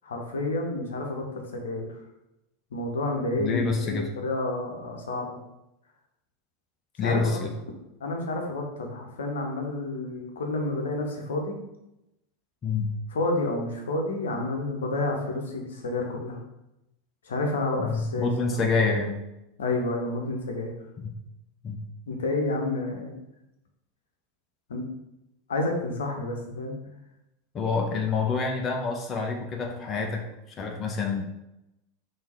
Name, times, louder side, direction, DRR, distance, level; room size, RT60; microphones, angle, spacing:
voice 1, 0.0-1.2 1.5-2.0 2.7-5.4 7.0-7.4 8.0-11.6 13.1-16.4 17.2-18.3 19.6-20.7 22.1-23.2 24.7-24.9 25.5-26.8, left 2 dB, 75° left, 2 dB, 0.9 m, -30 dB
voice 2, 3.4-4.1 7.0-7.5 12.6-12.9 17.8-19.2 21.0-21.1 21.6-21.8 27.5-30.3 30.6-31.2, left 4 dB, 30° left, 2 dB, 0.6 m, -27 dB
3.6 x 3.2 x 4.4 m, 0.89 s
figure-of-eight pair, 85°, 0 cm